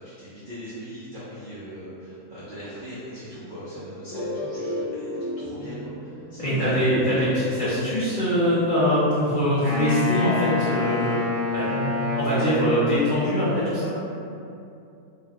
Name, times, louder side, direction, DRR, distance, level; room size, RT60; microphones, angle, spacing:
voice 1, 0.0-5.1 5.4-7.2, equal, 75° right, -11 dB, 0.4 m, -39 dB
sound 1, 4.1-8.7, left 1 dB, 85° left, 1.2 m, -35 dB
voice 2, 6.4-11.2 11.5-13.9, equal, 70° left, -12 dB, 0.4 m, -23 dB
Wind instrument woodwind instrument, 9.6-13.1, left 4 dB, 10° left, 0.7 m, -27 dB
2.8 x 2.5 x 2.3 m, 2.7 s
omnidirectional pair, 1.7 m